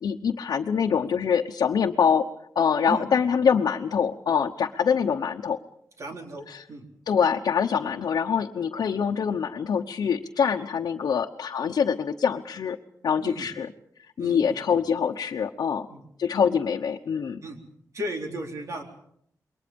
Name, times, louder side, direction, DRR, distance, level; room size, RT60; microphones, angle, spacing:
voice 1, 0.0-2.3 2.5-5.6 6.5-6.6 7.1-12.8 13.0-13.7 14.2-15.9 16.2-17.4, left 7 dB, 85° left, 2 dB, 1.0 m, -24 dB
voice 2, 6.0-6.9 13.2-13.5 14.2-14.7 15.9-16.0 17.4-17.6 17.9-18.8, right 1 dB, 50° right, 3 dB, 4.0 m, -35 dB
28.0 x 22.5 x 5.3 m, 0.69 s
wide cardioid pair, 140°, 7 cm